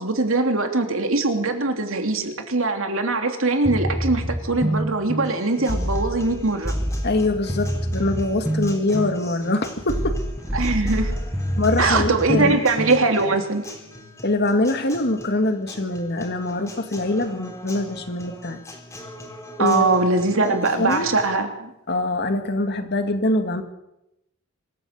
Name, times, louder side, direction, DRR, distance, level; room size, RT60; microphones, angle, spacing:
voice 1, 0.0-6.7 10.5-11.2 11.8-13.7 19.6-21.7, right 3 dB, 65° right, 5 dB, 3.0 m, -22 dB
sound 1, 3.6-13.4, equal, 5° right, 1.3 m, -27 dB
Acoustic guitar, 5.2-21.3, left 1 dB, 15° left, 4.2 m, -42 dB
voice 2, 7.0-10.2 11.6-12.6 14.2-18.6 19.6-21.1 21.9-23.6, left 2 dB, 50° left, 7 dB, 2.2 m, -24 dB
26.0 x 14.0 x 8.2 m, 0.87 s
head